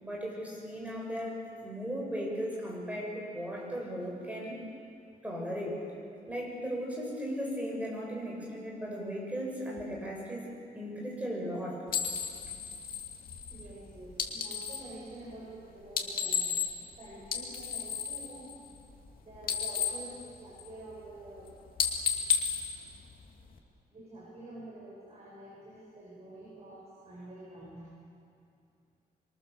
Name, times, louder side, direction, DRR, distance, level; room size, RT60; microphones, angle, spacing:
voice 1, 0.0-4.5 5.2-5.8 6.3-10.5 10.8-11.8, equal, 10° right, -2 dB, 7.0 m, -36 dB
sound 1, 11.9-14.9 15.8-16.9 17.2-19.1 19.3-20.9 21.3-21.5 21.8-23.6, left 7 dB, 60° left, 2.6 m, -33 dB
voice 2, 13.5-16.6 17.0-18.5 19.2-21.5 23.9-27.9, right 1 dB, 40° right, -7 dB, 7.8 m, -48 dB
25.5 x 24.0 x 7.1 m, 2.4 s
wide cardioid pair, 135°, 16 cm